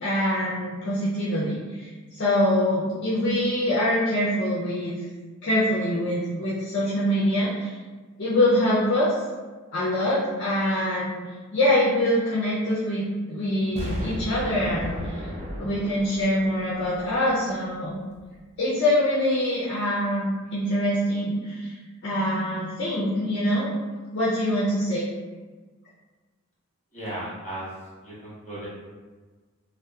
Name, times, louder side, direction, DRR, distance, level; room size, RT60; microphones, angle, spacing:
voice 1, 0.0-5.0 5.4-7.8 8.2-9.1 9.7-15.3 15.6-18.0 18.6-21.8 22.0-23.7 24.1-25.1, left 1 dB, 50° left, -8 dB, 0.5 m, -24 dB
Explosion, 13.8-17.7 18.1-18.2, equal, 30° right, 0.3 m, -35 dB
voice 2, 26.9-27.7 28.0-28.7, right 1 dB, 35° left, -8 dB, 1.0 m, -35 dB
2.7 x 2.0 x 2.3 m, 1.4 s
head